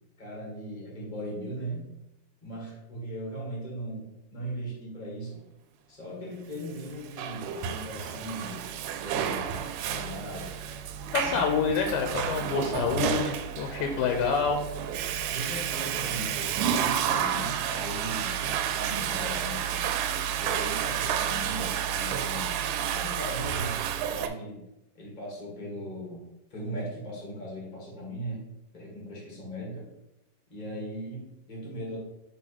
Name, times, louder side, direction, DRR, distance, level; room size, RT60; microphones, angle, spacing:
voice 1, 0.2-1.9 2.4-5.4 5.9-8.7 9.0-9.4 9.8-10.5 11.2-11.6 13.4-13.5 15.3-19.9 20.4-24.6 24.9-28.4 28.7-29.9 30.5-32.0, equal, 35° left, -3 dB, 0.7 m, -38 dB
Water / Toilet flush, 6.8-24.3, right 9 dB, 85° right, 2.1 m, -30 dB
voice 2, 11.1-14.6, left 6 dB, 85° left, 4 dB, 2.3 m, -27 dB
6.4 x 3.7 x 4.2 m, 0.89 s
omnidirectional pair, 4.0 m